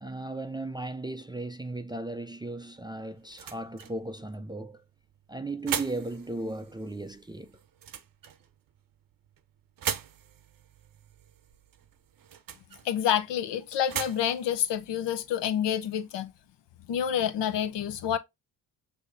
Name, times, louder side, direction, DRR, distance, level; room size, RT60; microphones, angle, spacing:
voice 1, 0.0-4.8 5.3-7.6, right 2 dB, 10° right, 0.4 m, -36 dB
sound 1, 2.5-16.0, right 9 dB, 50° right, 0.7 m, -41 dB
voice 2, 12.8-16.3 16.9-18.2, left 9 dB, 70° left, 0.7 m, -28 dB
6.2 x 2.7 x 2.6 m
supercardioid pair, 50°, 44 cm